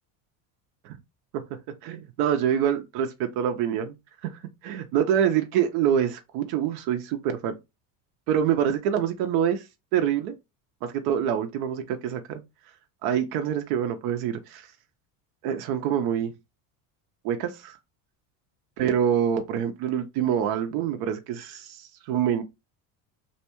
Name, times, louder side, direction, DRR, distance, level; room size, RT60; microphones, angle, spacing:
voice 1, 1.8-3.9 4.2-7.5 8.3-9.7 9.9-10.3 10.8-12.4 13.0-14.7 15.4-16.3 17.2-17.8 18.8-22.4, right 9 dB, 60° right, 0.5 m, -26 dB
2.6 x 2.1 x 2.9 m
cardioid pair, 135°, 42 cm